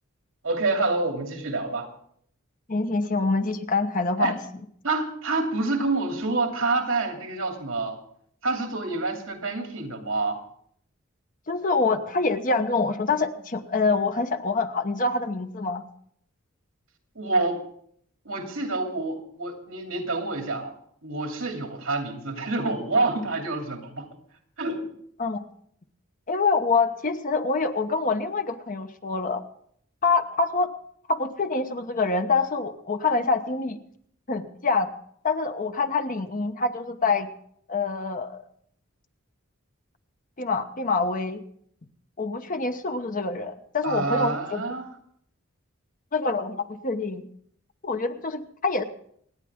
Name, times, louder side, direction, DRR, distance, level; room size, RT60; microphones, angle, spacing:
voice 1, 0.4-1.9 4.2-4.3 4.8-8.0 8.4-10.4 17.1-17.6 18.2-20.7 21.0-24.1 24.6-24.8 43.8-44.9, right 3 dB, 75° right, 3 dB, 2.8 m, -27 dB
voice 2, 2.7-4.4 11.5-15.8 25.2-25.4 26.3-29.4 30.0-30.7 31.1-33.8 34.3-34.9 35.2-37.3 37.7-38.4 40.4-41.4 42.2-44.6 46.1-47.2 47.8-48.8, left 3 dB, 40° left, 7 dB, 1.0 m, -26 dB
27.0 x 10.0 x 3.6 m, 0.66 s
head